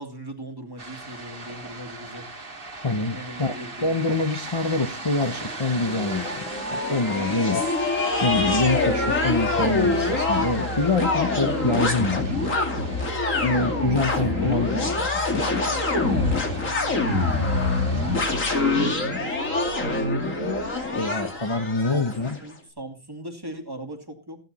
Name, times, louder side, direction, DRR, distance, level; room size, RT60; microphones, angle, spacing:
voice 1, 0.0-2.3 3.1-4.2 14.4-14.9 15.3-19.2 21.9-22.1 22.4-24.4, right 1 dB, 15° right, 3 dB, 2.6 m, -40 dB
sound 1, 0.8-18.9, right 3 dB, 45° right, 2.1 m, -39 dB
voice 2, 2.8-6.4 6.7-7.7 8.2-12.4 13.4-14.7 15.3-15.5 20.8-22.4, left 3 dB, 25° left, 6 dB, 0.8 m, -25 dB
sound 2, 5.3-22.4, left 2 dB, 85° left, 3.1 m, -25 dB
15.0 x 10.5 x 4.2 m, 0.32 s
omnidirectional pair, 1.3 m